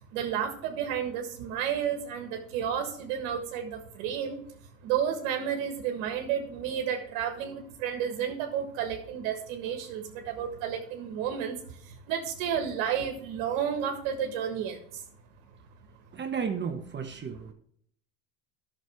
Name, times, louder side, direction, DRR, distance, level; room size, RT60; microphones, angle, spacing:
voice 1, 0.1-4.4 4.8-11.5 11.8-15.0, right 8 dB, 65° right, 5 dB, 1.6 m, -31 dB
voice 2, 16.1-17.5, right 6 dB, 25° right, 5 dB, 1.2 m, -33 dB
13.0 x 6.4 x 3.6 m, 0.65 s
hypercardioid pair, 90°, 40 cm